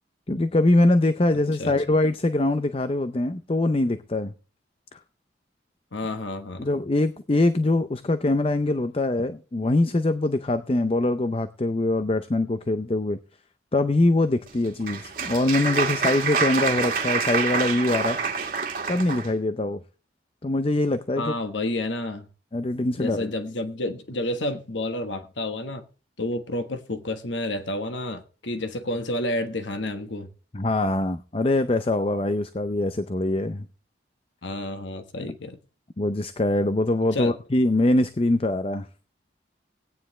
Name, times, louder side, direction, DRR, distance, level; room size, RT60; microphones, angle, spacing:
voice 1, 0.3-4.3 4.9-5.0 6.6-13.2 13.7-18.2 18.9-19.8 20.4-21.3 22.5-23.3 30.5-33.7 36.0-38.9, left 2 dB, 30° left, 0.5 m, -23 dB
voice 2, 5.9-6.7 21.2-22.3 23.0-25.8 26.2-30.3 34.4-35.6 37.1-37.4, left 1 dB, 85° left, 1.3 m, -30 dB
Applause, 14.5-19.3, right 5 dB, 50° right, 2.0 m, -27 dB
17.0 x 9.5 x 3.2 m
head